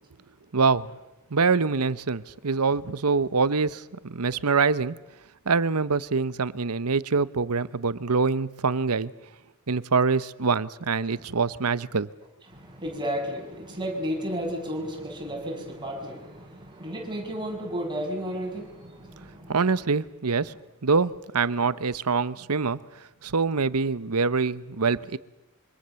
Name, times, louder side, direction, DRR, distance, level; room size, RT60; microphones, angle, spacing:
voice 1, 0.5-0.9 1.3-5.0 5.5-9.1 9.7-12.1 19.5-20.5 20.8-22.8 23.2-25.2, right 4 dB, 90° right, 0.9 m, -25 dB
voice 2, 12.5-19.6, equal, 20° right, 6.7 m, -33 dB
26.0 x 25.0 x 7.0 m
head